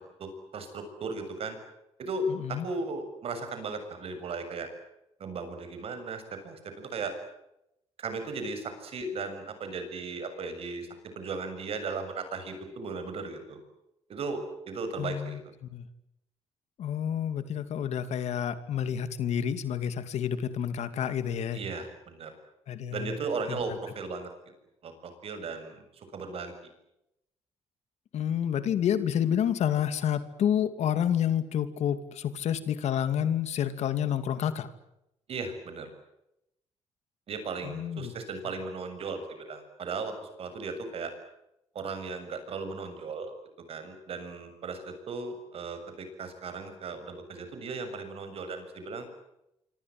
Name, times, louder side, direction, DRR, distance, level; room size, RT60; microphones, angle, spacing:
voice 1, 0.2-1.6 2.0-4.7 5.2-7.1 8.0-10.9 11.2-13.6 14.1-15.5 21.5-22.3 22.9-24.3 24.8-26.5 35.3-35.9 37.3-40.1 40.4-41.1 41.8-43.3 43.7-49.1, right 3 dB, 55° right, 8 dB, 7.0 m, -36 dB
voice 2, 2.3-2.7 15.0-15.9 16.8-21.6 22.7-23.2 23.5-23.8 28.1-34.7 37.6-38.1, left 9 dB, 70° left, 11 dB, 2.5 m, -29 dB
27.0 x 25.5 x 7.8 m, 0.84 s
cardioid pair, 135°, 12 cm